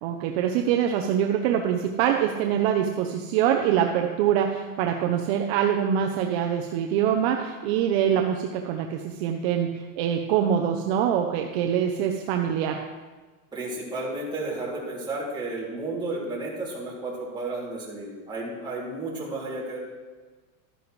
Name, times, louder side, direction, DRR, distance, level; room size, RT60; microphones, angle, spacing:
voice 1, 0.0-12.8, right 9 dB, 50° right, 3 dB, 0.7 m, -24 dB
voice 2, 13.5-19.8, right 2 dB, 10° right, -6 dB, 2.6 m, -32 dB
12.0 x 10.0 x 3.2 m, 1.3 s
supercardioid pair, 160°, 42 cm